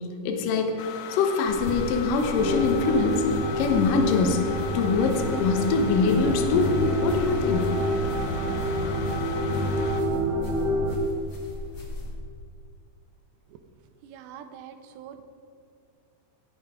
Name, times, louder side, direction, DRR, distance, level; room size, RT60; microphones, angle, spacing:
voice 1, 0.2-0.7 1.1-3.2 3.6-4.4 4.7-7.7, left 4 dB, 65° left, 4 dB, 2.5 m, -23 dB
sound 1, 0.8-10.0, left 7 dB, 85° left, 3.1 m, -38 dB
sound 2, 1.5-12.2, left 2 dB, 40° left, 1.4 m, -39 dB
sound 3, 2.3-11.0, equal, 55° right, 2.2 m, -27 dB
voice 2, 14.0-15.2, right 9 dB, 85° right, 8 dB, 3.0 m, -44 dB
17.5 x 8.5 x 5.0 m, 2.3 s
omnidirectional pair, 4.8 m